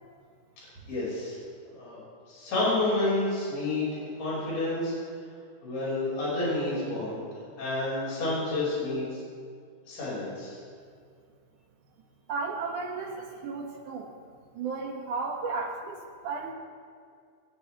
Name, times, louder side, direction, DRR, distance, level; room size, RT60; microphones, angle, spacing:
voice 1, 0.9-1.4 1.6-2.0 2.3-4.9 5.6-7.2 7.6-9.2 9.9-10.6, left 2 dB, 55° left, -7 dB, 7.5 m, -29 dB
voice 2, 12.3-14.1 14.5-16.5, right 4 dB, 55° right, -1 dB, 3.2 m, -34 dB
22.0 x 18.0 x 3.5 m, 2.1 s
omnidirectional pair, 4.8 m